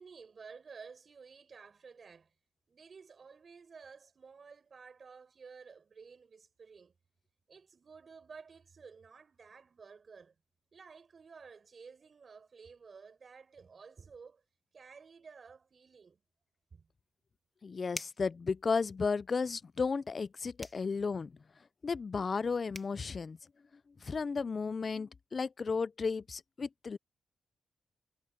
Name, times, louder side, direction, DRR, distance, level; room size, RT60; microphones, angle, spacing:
voice 1, 0.0-2.3 2.7-6.9 7.5-10.4 10.7-14.4 14.7-16.2 16.7-16.9, right 5 dB, 50° right, 7.1 m, -53 dB
voice 2, 17.6-21.3 21.8-23.4 24.0-27.0, left 5 dB, 45° left, 0.3 m, -34 dB
sound 1, 17.9-18.3 20.6-20.9 22.4-22.5 22.7-23.0, left 2 dB, 20° left, 1.7 m, -43 dB
cardioid pair, 75°, 0 cm